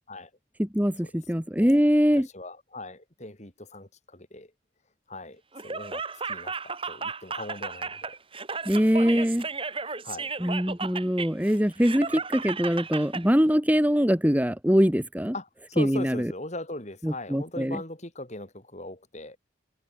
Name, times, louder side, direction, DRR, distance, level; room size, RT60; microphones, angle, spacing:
voice 1, 0.6-2.3 8.6-9.4 10.4-15.3 15.8-16.3 17.0-17.8, equal, 10° right, 1.6 m, -23 dB
voice 2, 2.1-4.5 5.1-8.2 10.0-10.3 15.3-19.4, left 2 dB, 35° left, 3.1 m, -39 dB
Laughter, 5.5-13.2, right 4 dB, 25° right, 4.2 m, -34 dB
head